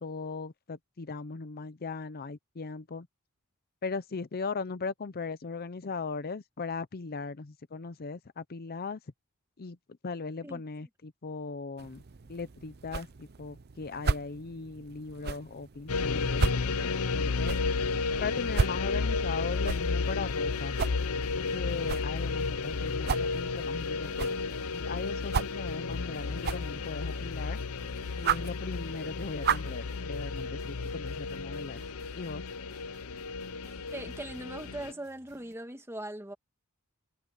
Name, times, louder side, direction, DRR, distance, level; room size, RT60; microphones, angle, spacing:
voice 1, 0.0-3.1 3.8-9.0 9.6-9.8 10.0-12.0 12.3-17.6 18.2-20.8 21.3-24.4 24.7-27.6 28.2-31.8 32.2-32.4, left 4 dB, 45° left, 0.6 m, -38 dB
sound 1, 11.8-29.8, right 5 dB, 45° right, 0.6 m, -36 dB
sound 2, 15.9-34.9, left 4 dB, 70° left, 0.8 m, -32 dB
sound 3, 19.7-35.6, right 2 dB, 30° right, 3.0 m, -60 dB
voice 2, 33.9-36.3, right 1 dB, 10° right, 1.6 m, -40 dB
head